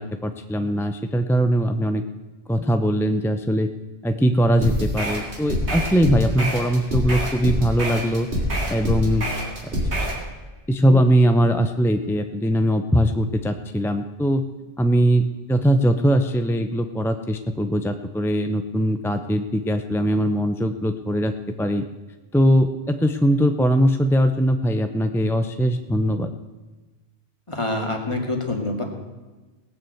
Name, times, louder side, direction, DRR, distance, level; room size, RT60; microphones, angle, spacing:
voice 1, 0.0-2.0 2.5-3.7 4.0-8.3 8.7-9.3 9.8-9.9 10.7-14.4 14.8-21.8 22.3-26.3, equal, 5° left, 7 dB, 0.4 m, -21 dB
sound 1, 4.6-10.2, equal, 80° right, 3.0 m, -25 dB
voice 2, 27.5-28.8, left 2 dB, 25° left, 2 dB, 2.2 m, -26 dB
18.0 x 6.9 x 7.8 m, 1.2 s
omnidirectional pair, 1.1 m